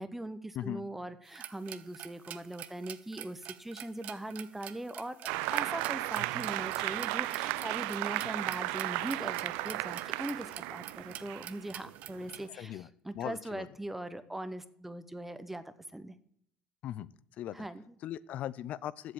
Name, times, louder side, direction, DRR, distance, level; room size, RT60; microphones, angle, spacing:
voice 1, 0.0-5.2 5.5-15.6 15.9-16.1 17.5-18.0, right 1 dB, 10° right, 12 dB, 0.9 m, -41 dB
sound 1, 1.3-12.4, right 12 dB, 65° right, 0.7 m, -48 dB
Applause, 5.3-12.5, right 18 dB, 90° right, 0.4 m, -35 dB
voice 2, 12.5-12.9 13.1-13.7 16.8-17.1 17.4-17.7 18.0-19.1, left 11 dB, 60° left, 19 dB, 0.5 m, -38 dB
7.8 x 7.6 x 8.5 m, 0.67 s
cardioid pair, 105°, 3 cm